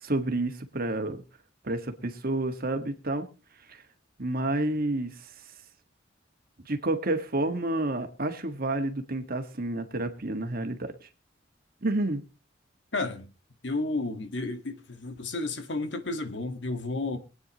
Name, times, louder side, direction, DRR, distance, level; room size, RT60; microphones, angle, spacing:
voice 1, 0.0-1.2 1.6-3.3 3.7-3.8 4.2-5.3 6.7-11.1 11.8-12.2, right 2 dB, 55° right, 1.7 m, -29 dB
voice 2, 12.9-13.3 13.6-17.2, left 2 dB, 75° left, 1.7 m, -32 dB
23.5 x 9.2 x 3.0 m
head